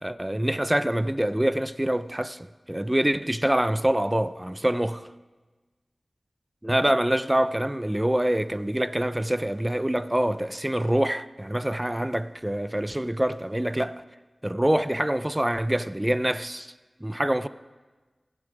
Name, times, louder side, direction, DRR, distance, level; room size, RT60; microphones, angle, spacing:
voice 1, 0.0-5.1 6.6-14.0 14.4-16.7 17.0-17.5, right 1 dB, 15° right, 0.4 m, -25 dB
17.5 x 6.5 x 5.1 m
wide cardioid pair, 75°, 0 cm